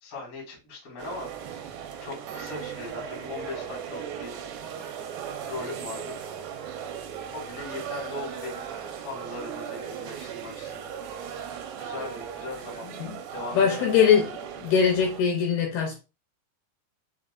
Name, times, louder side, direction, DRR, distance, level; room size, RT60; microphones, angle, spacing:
voice 1, 0.0-1.3 1.6-1.7 2.0-4.3 5.5-6.2 7.3-8.6 9.0-10.9 11.8-14.0, left 3 dB, 50° left, 0.9 m, -39 dB
sound 1, 1.0-15.2, right 8 dB, 75° right, 2.6 m, -37 dB
voice 2, 13.5-14.3 14.6-16.0, left 7 dB, 75° left, 2.4 m, -21 dB
6.6 x 2.7 x 2.5 m
omnidirectional pair, 5.1 m